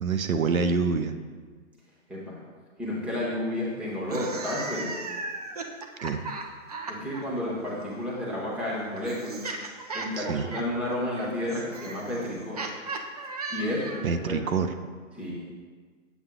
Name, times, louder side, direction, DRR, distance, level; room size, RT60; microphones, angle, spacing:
voice 1, 0.0-1.1 6.0-6.2 10.2-10.5 14.0-14.7, right 5 dB, 85° right, 8 dB, 0.7 m, -26 dB
voice 2, 2.8-5.0 6.9-9.4 9.9-12.6 13.5-14.4 15.1-15.5, left 1 dB, 5° right, -6 dB, 0.9 m, -31 dB
sound 1, 4.0-7.2 8.3-14.2, right 3 dB, 30° right, 0.4 m, -37 dB
8.0 x 7.2 x 2.3 m, 1.5 s
figure-of-eight pair, 135°, 40 cm